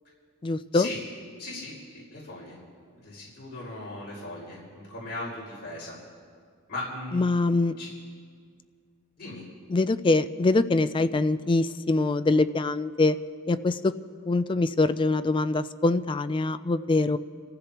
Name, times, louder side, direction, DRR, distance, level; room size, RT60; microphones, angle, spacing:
voice 1, 0.4-0.9 7.1-7.8 9.7-13.2 13.5-13.9 14.3-17.2, left 2 dB, 20° left, 12 dB, 0.3 m, -24 dB
voice 2, 1.4-1.8 2.1-2.6 3.0-6.0 6.7-7.4 7.8-7.9 9.2-9.5, left 2 dB, 45° left, -7 dB, 5.3 m, -38 dB
29.0 x 15.0 x 3.0 m, 2.1 s
head